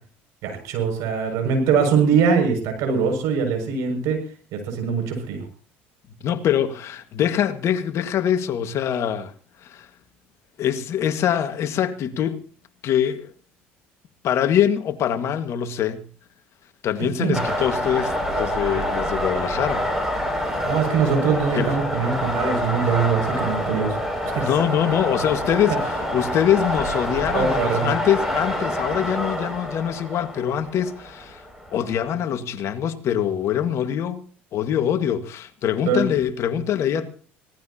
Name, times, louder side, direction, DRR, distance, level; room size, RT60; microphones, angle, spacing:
voice 1, 0.4-4.2 4.5-5.4 17.2-17.4 20.6-24.0 24.2-24.5 27.2-27.9 35.9-36.0, right 6 dB, 70° right, 6.5 m, -22 dB
voice 2, 6.2-9.3 9.6-9.9 10.6-12.4 12.8-13.3 14.2-16.0 16.8-19.8 21.5-21.8 24.4-31.4 31.7-34.2 34.5-37.1, left 9 dB, 55° left, 1.8 m, -23 dB
sound 1, 17.3-32.2, equal, 5° right, 6.3 m, -27 dB
24.5 x 17.5 x 2.9 m
hypercardioid pair, 75°, 6 cm